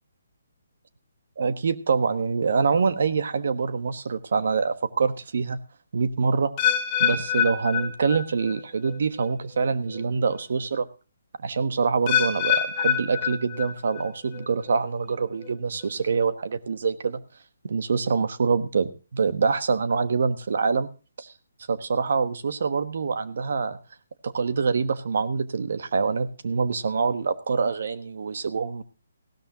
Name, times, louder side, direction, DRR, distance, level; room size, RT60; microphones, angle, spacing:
voice 1, 1.4-5.6 5.9-6.5 7.0-10.9 11.4-17.2 17.6-20.9 21.2-21.3 21.7-23.8 24.2-28.8, right 5 dB, 65° right, 11 dB, 1.2 m, -25 dB
sound 1, 6.6-8.6 8.9-9.3 9.9-10.0 12.1-14.0 14.3-14.8 15.4-15.5, left 9 dB, 25° left, 1.2 m, -26 dB
16.5 x 13.0 x 2.8 m, 0.33 s
hypercardioid pair, 150°, 0 cm